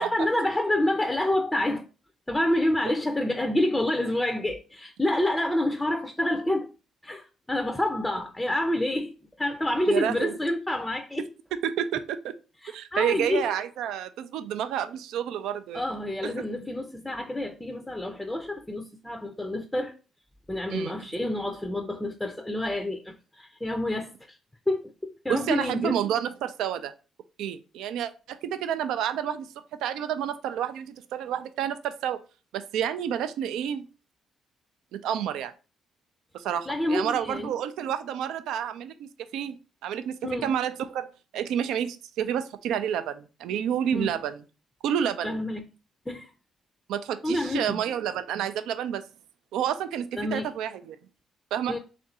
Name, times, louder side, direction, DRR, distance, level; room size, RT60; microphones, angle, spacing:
voice 1, 0.0-1.9 2.3-6.7 7.0-11.3 12.6-13.5 15.7-19.9 20.5-24.4 24.7-25.9 36.7-37.5 40.2-40.5 43.9-44.1 45.2-45.7 46.1-46.3 47.2-47.8 50.1-50.5 51.7-51.8, left 1 dB, 10° left, 0.4 m, -28 dB
voice 2, 9.9-10.3 11.6-12.3 12.7-15.8 16.2-16.3 20.7-21.1 25.3-26.9 27.4-29.5 29.8-32.2 32.5-33.8 34.9-35.5 36.3-39.6 39.8-41.1 41.3-44.4 44.8-45.4 46.9-49.0 49.5-51.0 51.5-51.7, right 9 dB, 85° right, 0.4 m, -29 dB
3.6 x 2.5 x 4.1 m
cardioid pair, 90°, 0 cm